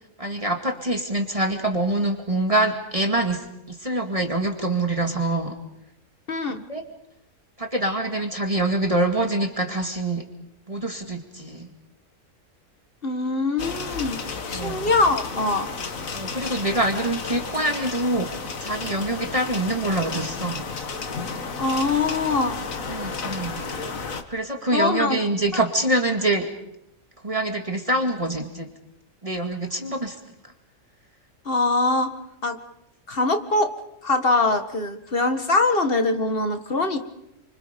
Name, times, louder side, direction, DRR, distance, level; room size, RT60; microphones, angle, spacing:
voice 1, 0.2-5.6 6.5-6.8 7.6-10.2 10.7-11.7 14.5-14.9 16.1-20.6 22.9-23.6 24.3-26.5 27.2-28.7 29.2-30.2 30.4-30.5, right 1 dB, 25° right, 4 dB, 2.2 m, -25 dB
voice 2, 6.3-6.6 13.0-14.2 14.5-15.7 21.6-22.6 24.7-25.2 25.5-25.6 31.5-32.1 32.4-32.6 33.1-33.7 34.0-37.0, left 3 dB, 45° left, 7 dB, 1.9 m, -23 dB
sound 1, 13.6-24.2, left 4 dB, 90° left, 1.9 m, -32 dB
29.5 x 25.5 x 5.3 m, 0.82 s
omnidirectional pair, 1.4 m